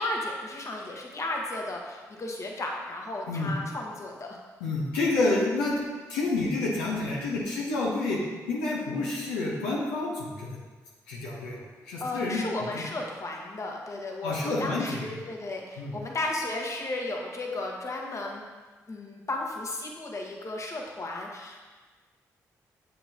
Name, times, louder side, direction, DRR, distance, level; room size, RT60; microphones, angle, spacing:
voice 1, 0.0-4.4 12.0-18.4 18.9-21.6, left 2 dB, 45° left, 0 dB, 1.2 m, -34 dB
voice 2, 4.6-5.8 6.1-8.2 8.5-10.6 11.1-12.4 12.7-12.9 14.2-15.0 15.8-15.9, left 2 dB, 90° left, -4 dB, 0.9 m, -29 dB
7.0 x 5.5 x 2.8 m, 1.4 s
hypercardioid pair, 45°, 7 cm